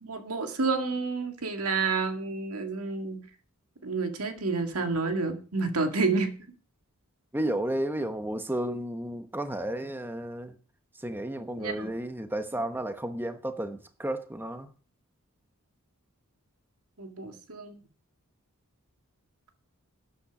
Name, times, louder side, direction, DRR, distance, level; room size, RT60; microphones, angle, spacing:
voice 1, 0.0-3.2 3.8-6.3 11.6-11.9 17.0-17.8, right 4 dB, 80° right, 2.0 m, -29 dB
voice 2, 7.3-10.6 11.0-14.7, right 1 dB, 10° right, 1.0 m, -32 dB
12.0 x 8.8 x 6.0 m
head